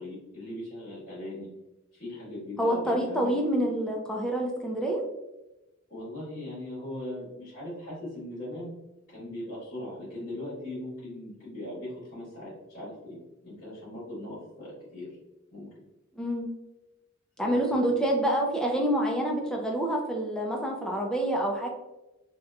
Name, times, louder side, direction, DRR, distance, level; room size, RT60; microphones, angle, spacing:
voice 1, 0.0-1.5 1.9-3.4 5.9-8.7 9.1-13.2 13.4-15.1 15.5-15.8 17.4-17.9, left 1 dB, 50° left, -10 dB, 1.2 m, -39 dB
voice 2, 2.6-5.0 16.1-16.5 17.4-21.7, right 1 dB, 5° left, -1 dB, 0.4 m, -27 dB
2.9 x 2.3 x 2.2 m, 0.99 s
head